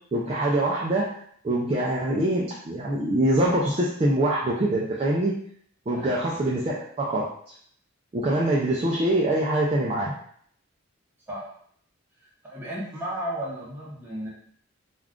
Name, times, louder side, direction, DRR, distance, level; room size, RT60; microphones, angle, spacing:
voice 1, 0.1-1.2 1.4-5.3 5.9-7.5 8.1-10.1, right 1 dB, 25° right, -5 dB, 0.3 m, -24 dB
voice 2, 12.2-14.3, right 1 dB, 10° right, -6 dB, 0.8 m, -34 dB
2.4 x 2.3 x 3.5 m, 0.63 s
head